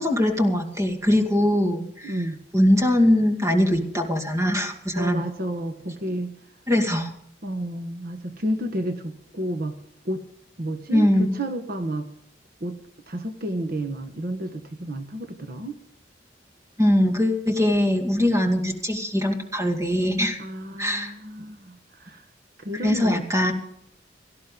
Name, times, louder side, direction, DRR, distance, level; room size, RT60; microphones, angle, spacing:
voice 1, 0.0-2.2 2.5-5.2 6.7-7.1 10.9-11.4 16.8-20.4 20.8-21.1 22.7-23.5, left 1 dB, 15° right, 3 dB, 2.2 m, -21 dB
voice 2, 2.0-2.4 5.0-6.4 7.4-9.8 10.0-10.2 10.6-12.1 12.6-12.8 13.1-15.8 20.4-22.2 22.6-23.3, right 1 dB, 55° right, 6 dB, 1.3 m, -31 dB
17.5 x 14.5 x 3.9 m, 0.70 s
head